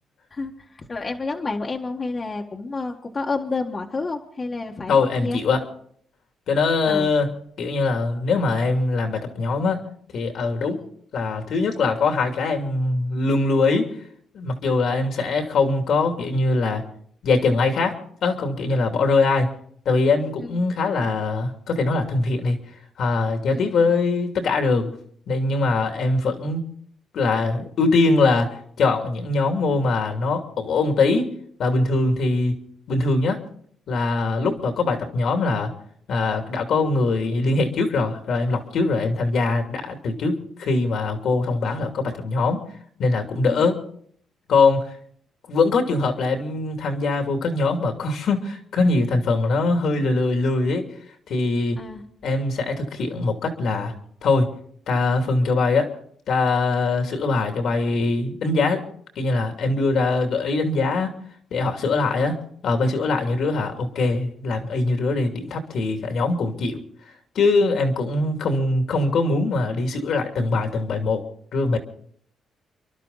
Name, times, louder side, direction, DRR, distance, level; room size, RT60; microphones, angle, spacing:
voice 1, 0.3-5.4 6.9-7.1 20.4-20.6 23.5-23.7 34.4-34.6 43.5-43.7 51.8-52.0, left 3 dB, 35° left, 1 dB, 1.7 m, -30 dB
voice 2, 4.9-5.6 6.5-9.8 10.1-10.8 11.1-13.9 14.3-16.8 17.2-19.5 19.8-22.6 23.0-24.9 25.3-26.6 27.1-31.3 31.6-32.5 32.9-33.4 33.9-35.7 36.1-42.6 43.0-43.8 44.5-44.9 45.5-50.8 51.3-51.8 52.2-53.9 54.2-54.5 54.9-55.9 56.3-58.8 59.2-61.1 61.5-62.4 62.6-66.8 67.3-71.2 71.5-71.8, left 3 dB, 70° left, 5 dB, 2.8 m, -22 dB
29.5 x 12.0 x 4.1 m, 0.63 s
cardioid pair, 90°, 0 cm